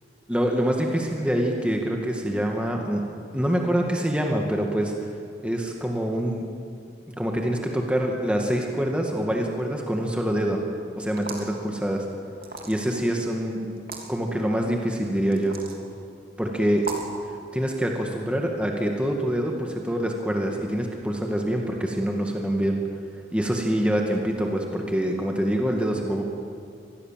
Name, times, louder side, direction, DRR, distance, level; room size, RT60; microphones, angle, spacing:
voice 1, 0.3-3.0 3.3-4.9 5.4-6.4 7.2-10.6 11.0-12.0 12.7-13.7 14.1-15.5 16.4-16.9 17.5-22.8 23.3-26.2, equal, 5° right, 1 dB, 2.0 m, -25 dB
sound 1, 11.1-11.6 12.4-13.0 13.8-14.1 15.3-15.8 16.8-17.2, right 3 dB, 55° right, 3.2 m, -35 dB
26.0 x 20.0 x 7.6 m, 2.3 s
head